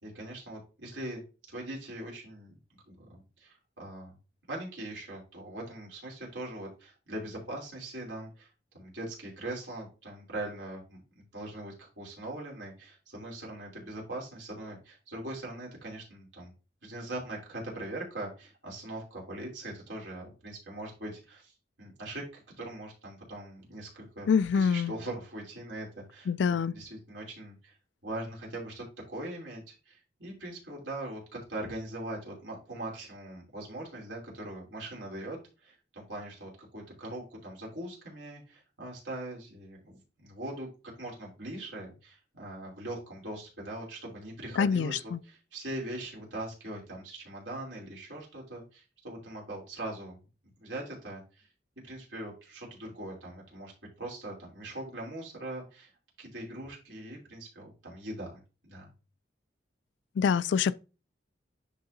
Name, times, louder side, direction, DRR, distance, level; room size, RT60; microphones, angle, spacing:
voice 1, 0.0-1.2 1.5-2.5 2.9-4.1 4.5-11.0 11.3-16.5 16.8-26.3 26.7-27.7 28.0-40.7 41.0-50.2 50.6-51.5 51.8-53.7 54.0-55.9 56.2-58.9, right 1 dB, 75° right, 3.0 m, -41 dB
voice 2, 24.3-24.9 26.3-26.7 44.6-45.2 60.2-60.7, left 6 dB, 75° left, 0.3 m, -25 dB
10.5 x 3.8 x 2.6 m
head